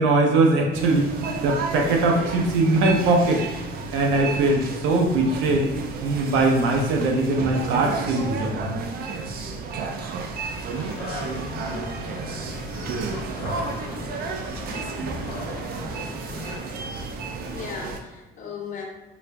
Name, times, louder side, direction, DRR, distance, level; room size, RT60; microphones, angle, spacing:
voice 1, 0.0-3.4 3.9-5.7 6.0-8.8, right 2 dB, 85° right, 1 dB, 0.7 m, -21 dB
sound 1, 0.7-18.0, right 4 dB, 50° right, 0.4 m, -32 dB
sound 2, 10.8-16.6, left 3 dB, 75° left, 1.1 m, -37 dB
voice 2, 17.5-18.8, left 5 dB, 40° left, 0 dB, 0.6 m, -37 dB
4.9 x 2.5 x 2.2 m, 1.1 s
cardioid pair, 155°, 20 cm